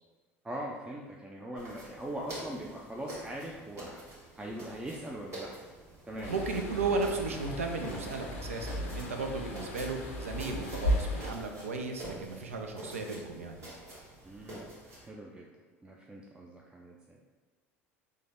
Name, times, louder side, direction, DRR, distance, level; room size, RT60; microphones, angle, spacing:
voice 1, 0.4-4.0 4.3-5.5 6.1-6.6 6.9-7.0 14.2-14.7 15.0-15.5 15.8-17.2, right 1 dB, 15° right, -2 dB, 0.4 m, -41 dB
sound 1, 1.5-15.1, right 1 dB, 45° right, 1.4 m, -47 dB
sound 2, 6.2-11.3, equal, 80° left, 0.5 m, -35 dB
voice 2, 6.3-13.6, right 3 dB, 90° right, 4 dB, 0.3 m, -35 dB
3.3 x 2.1 x 3.5 m, 1.3 s
hypercardioid pair, 70°, 7 cm